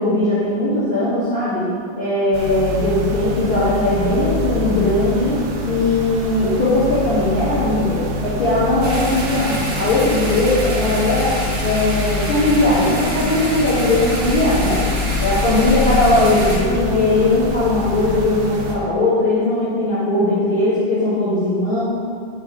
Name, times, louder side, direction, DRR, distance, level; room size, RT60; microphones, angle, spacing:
voice 1, 0.0-1.7 2.0-5.3 5.6-11.3 11.6-14.8 15.2-21.8, left 2 dB, 80° left, -12 dB, 1.1 m, -19 dB
sound 1, 2.3-18.8, left 2 dB, 90° right, 3.2 m, -25 dB
sound 2, 8.8-16.6, right 1 dB, 55° right, 1.7 m, -28 dB
9.4 x 3.8 x 4.5 m, 2.3 s
omnidirectional pair, 5.2 m